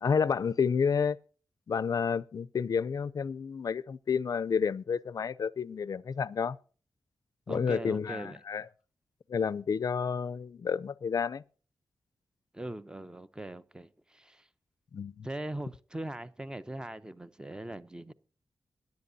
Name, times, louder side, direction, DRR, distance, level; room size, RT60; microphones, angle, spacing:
voice 1, 0.0-1.2 1.7-6.6 7.5-8.7 9.3-11.4 14.9-15.3, left 6 dB, 55° left, 0.5 m, -30 dB
voice 2, 7.5-8.4 12.5-14.5 15.2-18.1, right 1 dB, 10° right, 0.7 m, -40 dB
22.0 x 10.5 x 2.7 m
wide cardioid pair, 90°, 7 cm